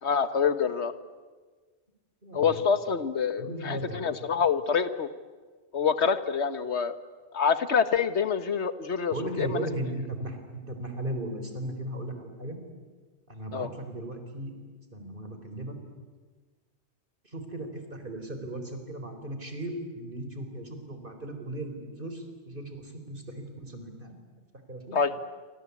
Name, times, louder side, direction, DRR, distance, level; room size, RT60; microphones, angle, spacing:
voice 1, 0.0-0.9 2.3-5.1 5.7-6.9 7.3-9.7 13.5-13.7 24.9-25.1, left 6 dB, 90° left, 12 dB, 1.6 m, -26 dB
voice 2, 2.2-2.6 3.4-4.1 9.1-12.6 13.3-14.5 14.9-15.8 17.2-24.2 24.7-25.0, right 1 dB, 50° right, 6 dB, 4.3 m, -37 dB
28.5 x 25.0 x 8.4 m, 1.4 s
omnidirectional pair, 1.1 m